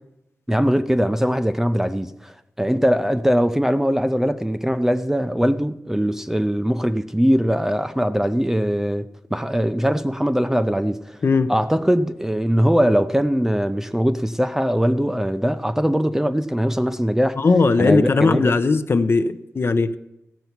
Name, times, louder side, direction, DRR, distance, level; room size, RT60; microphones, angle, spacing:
voice 1, 0.5-9.1 9.3-11.2 11.5-17.4 17.8-18.5, equal, 5° right, 0.5 m, -21 dB
voice 2, 17.4-20.0, left 4 dB, 45° left, 0.6 m, -18 dB
15.5 x 6.8 x 5.8 m
wide cardioid pair, 110°, 6 cm